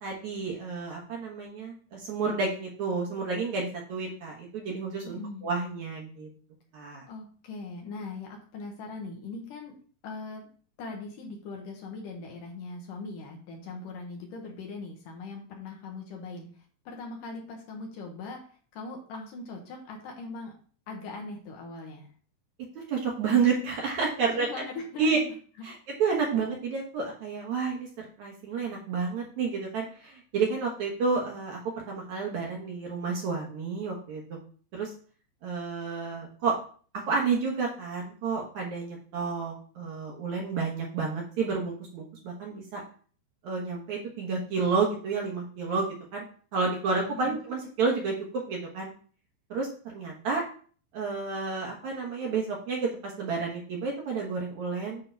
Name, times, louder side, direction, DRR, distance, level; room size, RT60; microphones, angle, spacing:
voice 1, 0.0-6.3 6.7-7.1 22.8-24.5 25.0-25.2 25.6-31.6 31.9-34.2 34.7-34.9 35.4-36.6 37.1-42.8 43.4-46.2 46.5-48.9 49.5-50.4 50.9-55.0, right 5 dB, 60° right, -1 dB, 2.2 m, -30 dB
voice 2, 5.0-5.5 7.1-9.7 10.0-10.5 10.8-16.5 16.9-18.4 18.7-20.5 20.9-22.1 24.3-25.2 47.1-47.3, left 3 dB, 65° left, 1 dB, 2.6 m, -40 dB
8.9 x 3.8 x 4.5 m, 0.43 s
omnidirectional pair, 4.4 m